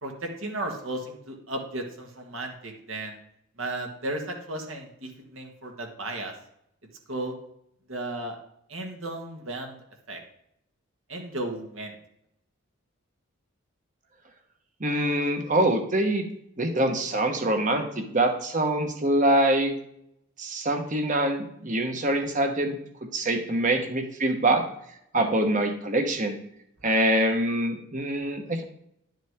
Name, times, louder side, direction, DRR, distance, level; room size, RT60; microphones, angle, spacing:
voice 1, 0.0-3.2 3.6-6.3 7.1-7.3 7.9-8.4 8.7-9.7 10.1-10.2 11.1-11.9, right 1 dB, 65° right, 2 dB, 1.7 m, -34 dB
voice 2, 14.8-16.3 16.6-19.7 20.4-22.8 23.1-24.6 25.1-26.4 26.8-28.6, right 1 dB, 35° right, 5 dB, 1.2 m, -24 dB
11.0 x 7.3 x 3.7 m, 0.74 s
head